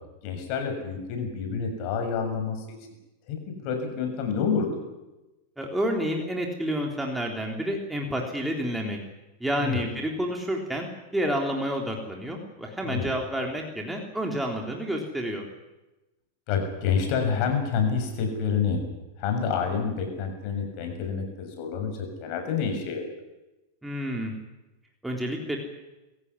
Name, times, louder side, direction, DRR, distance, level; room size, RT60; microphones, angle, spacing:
voice 1, 0.2-2.6 3.3-3.4 3.6-4.8 9.6-9.8 12.8-13.1 16.5-18.8 19.2-23.0, left 6 dB, 50° left, 5 dB, 7.1 m, -28 dB
voice 2, 5.6-9.0 9.4-10.9 11.1-15.5 23.8-24.3 25.0-25.6, equal, 5° right, 1 dB, 3.4 m, -29 dB
23.5 x 15.5 x 9.8 m, 1.0 s
supercardioid pair, 135°, 0 cm